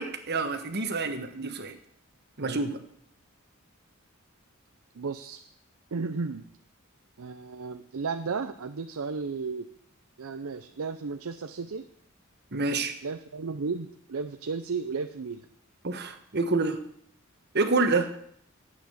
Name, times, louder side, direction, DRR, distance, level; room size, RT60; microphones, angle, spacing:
voice 1, 0.0-1.7 2.4-2.8 12.5-13.0 15.8-16.8 17.5-18.1, right 3 dB, 50° right, 8 dB, 1.3 m, -27 dB
voice 2, 1.0-1.5 2.4-2.6 4.9-5.4 5.9-6.4 7.2-9.7 10.2-11.8 13.0-15.5, right 4 dB, 90° right, 8 dB, 0.6 m, -34 dB
10.5 x 8.5 x 7.0 m, 0.67 s
head